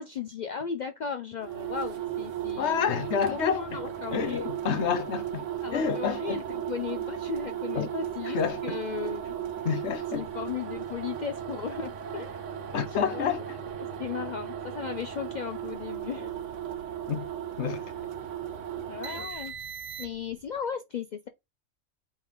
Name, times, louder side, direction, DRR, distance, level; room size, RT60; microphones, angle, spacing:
voice 1, 0.0-2.8 3.3-4.4 5.6-9.3 10.1-12.4 12.9-13.3 14.0-16.3 18.7-19.5 20.0-21.3, left 7 dB, 85° left, 0.4 m, -36 dB
sound 1, 1.4-20.4, right 10 dB, 70° right, 1.0 m, -36 dB
voice 2, 2.6-3.8 4.1-5.4 5.7-6.4 7.7-7.9 8.2-8.8 9.6-10.3 12.7-13.6 17.1-17.3 17.6-17.8, left 7 dB, 65° left, 1.0 m, -29 dB
3.6 x 3.2 x 4.6 m
omnidirectional pair, 1.3 m